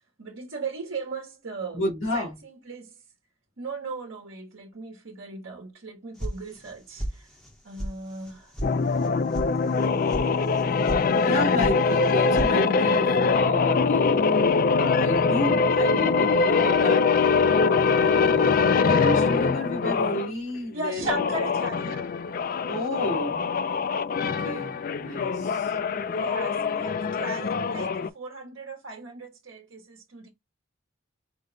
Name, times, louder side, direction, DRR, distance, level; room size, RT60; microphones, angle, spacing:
voice 1, 0.2-1.8 2.1-3.0 3.6-7.3 7.6-8.6 20.7-22.1 25.7-30.3, right 3 dB, 75° right, 1.1 m, -37 dB
voice 2, 1.7-2.3 11.2-17.0 17.6-21.0 22.7-23.4 24.2-25.8, left 1 dB, 75° left, 2.2 m, -31 dB
sound 1, 6.2-6.7 7.0-7.5 7.8-7.9 8.2-8.7 9.0-9.5 9.8-10.2 10.6-11.0 11.3-11.8 12.0-12.5, right 1 dB, 5° left, 0.8 m, -32 dB
sound 2, 8.6-20.3 21.0-28.1, left 5 dB, 45° left, 0.3 m, -23 dB
5.1 x 2.1 x 3.8 m
head